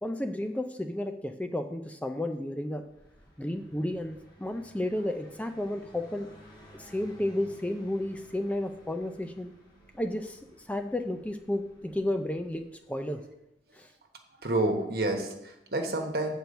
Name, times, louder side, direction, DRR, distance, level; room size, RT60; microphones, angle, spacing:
voice 1, 0.0-2.8 3.4-6.3 6.7-9.5 9.9-13.2 13.7-13.9, left 1 dB, 10° left, 6 dB, 0.4 m, -32 dB
Car passing by, 2.7-13.4, equal, 25° left, 1.8 m, -55 dB
voice 2, 14.4-16.3, right 2 dB, 60° right, 3 dB, 1.2 m, -29 dB
7.7 x 4.5 x 6.9 m, 0.84 s
head